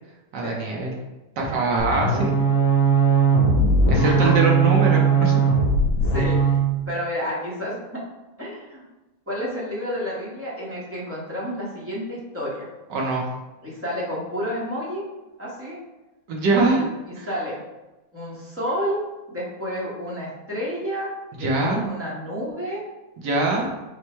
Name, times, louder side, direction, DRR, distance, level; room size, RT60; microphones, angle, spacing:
voice 1, 0.3-0.9 1.4-2.3 3.9-5.4 12.9-13.3 16.3-16.9 17.2-17.3 21.4-21.8 23.2-23.7, right 3 dB, 65° right, -1 dB, 1.2 m, -23 dB
sound 1, 1.8-6.7, right 4 dB, 65° left, 0.8 m, -19 dB
voice 2, 4.0-4.4 4.6-4.7 6.0-6.4 6.8-7.8 8.4-8.8 9.3-12.7 13.6-15.0 15.4-15.8 17.1-17.6 18.1-19.0 19.3-21.1 21.4-22.8, equal, 15° right, -7 dB, 0.4 m, -30 dB
4.4 x 2.1 x 4.4 m, 1.1 s
omnidirectional pair, 2.3 m